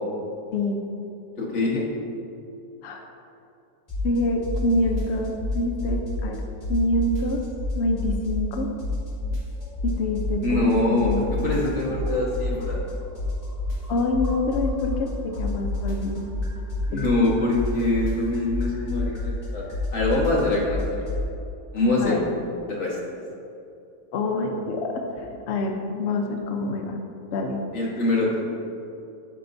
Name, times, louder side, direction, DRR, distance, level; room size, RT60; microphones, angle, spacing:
voice 1, 1.4-1.8 10.4-12.9 16.9-19.6 19.9-21.1 21.7-22.2 22.7-23.0 27.7-28.3, left 2 dB, 40° left, -4 dB, 1.5 m, -24 dB
sound 1, 3.9-4.2 4.4-6.4 6.6-8.5 8.8-10.7 11.0-15.1 15.3-21.2, left 2 dB, 25° left, 1.6 m, -28 dB
voice 2, 4.0-6.4 6.7-7.4 7.7-8.7 9.8-11.6 13.9-16.3 16.9-17.0 22.0-22.2 24.1-27.0 27.3-27.6, left 2 dB, 80° left, 2 dB, 0.6 m, -26 dB
12.0 x 4.7 x 2.6 m, 2.6 s
omnidirectional pair, 2.0 m